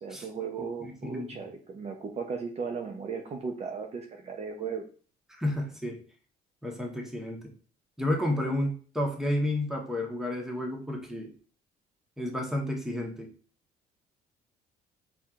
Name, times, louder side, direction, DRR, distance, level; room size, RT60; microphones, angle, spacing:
voice 1, 0.0-4.9, right 5 dB, 40° right, 3 dB, 0.8 m, -36 dB
voice 2, 0.8-1.3 5.4-6.0 6.6-7.5 8.0-11.3 12.2-13.3, left 1 dB, 5° right, 1 dB, 1.2 m, -31 dB
4.4 x 4.3 x 2.5 m, 0.39 s
cardioid pair, 110°, 17 cm